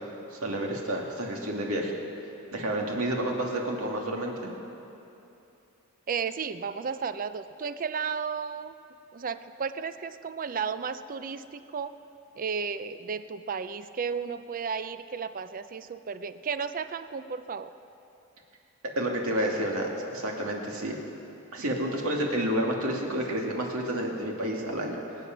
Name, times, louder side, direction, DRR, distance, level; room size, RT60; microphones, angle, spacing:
voice 1, 0.0-1.9 2.5-4.5 19.0-21.0 21.5-25.3, right 1 dB, 70° right, 0 dB, 2.3 m, -30 dB
voice 2, 6.1-8.7 9.1-11.9 12.4-17.7 21.6-21.7, right 6 dB, 40° right, 12 dB, 0.5 m, -33 dB
25.0 x 8.6 x 5.9 m, 2.9 s
head